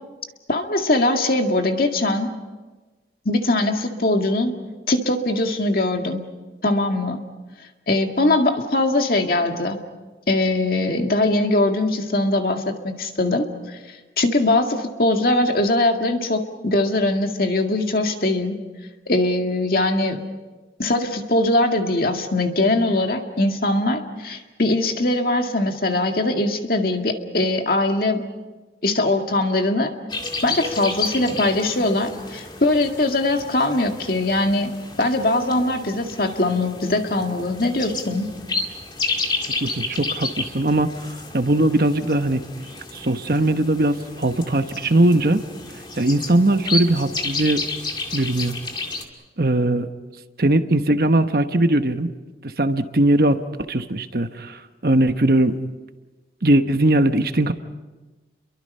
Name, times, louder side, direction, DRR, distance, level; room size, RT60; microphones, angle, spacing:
voice 1, 0.5-2.3 3.3-4.5 4.9-6.2 6.6-7.2 7.9-9.8 10.3-13.8 14.2-18.6 19.1-20.2 20.8-28.3 28.8-29.9 30.4-34.7 35.0-38.3, left 2 dB, 55° left, 4 dB, 2.1 m, -21 dB
sound 1, 30.1-49.0, left 3 dB, 25° left, 2.1 m, -31 dB
voice 2, 39.6-40.9 41.3-42.4 42.9-45.4 46.0-47.6 48.1-48.5 49.4-49.9 50.4-52.1 52.4-53.4 53.7-55.6 56.4-57.5, right 1 dB, 55° right, 9 dB, 1.1 m, -19 dB
30.0 x 23.0 x 5.5 m, 1.2 s
head